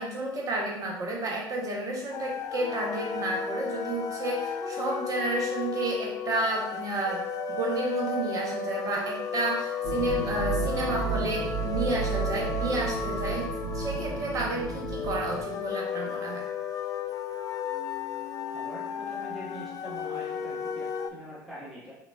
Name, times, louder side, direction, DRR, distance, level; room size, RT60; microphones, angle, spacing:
voice 1, 0.0-7.2 7.5-13.5 13.7-16.4, right 2 dB, 30° right, 0 dB, 0.6 m, -31 dB
sound 1, 2.1-21.1, left 6 dB, 35° left, 0.3 m, -34 dB
sound 2, 9.8-15.4, right 6 dB, 55° right, 1.3 m, -33 dB
voice 2, 18.5-21.9, equal, 5° right, -6 dB, 0.8 m, -44 dB
3.9 x 2.2 x 2.2 m, 0.85 s
figure-of-eight pair, 65°, 11 cm